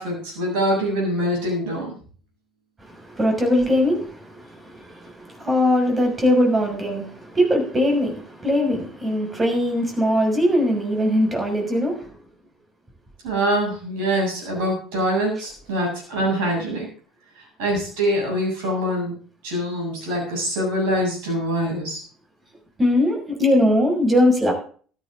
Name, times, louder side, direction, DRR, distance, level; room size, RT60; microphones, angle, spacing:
voice 1, 0.0-1.9 13.2-16.9 17.4-19.2 19.4-22.0, equal, 65° right, 0 dB, 7.5 m, -24 dB
voice 2, 2.8-12.1 22.8-24.5, left 1 dB, 20° right, 2 dB, 6.1 m, -21 dB
15.0 x 13.0 x 3.8 m, 0.43 s
figure-of-eight pair, 60°, 0 cm